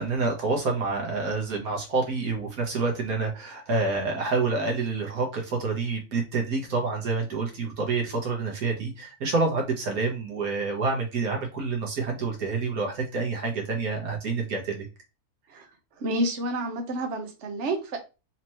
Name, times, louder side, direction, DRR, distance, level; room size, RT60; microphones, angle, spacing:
voice 1, 0.0-14.8 15.5-15.6, right 3 dB, 75° right, 1 dB, 1.5 m, -28 dB
voice 2, 16.0-18.0, right 1 dB, 55° right, 5 dB, 1.1 m, -29 dB
4.3 x 2.9 x 3.0 m, 0.29 s
omnidirectional pair, 1.6 m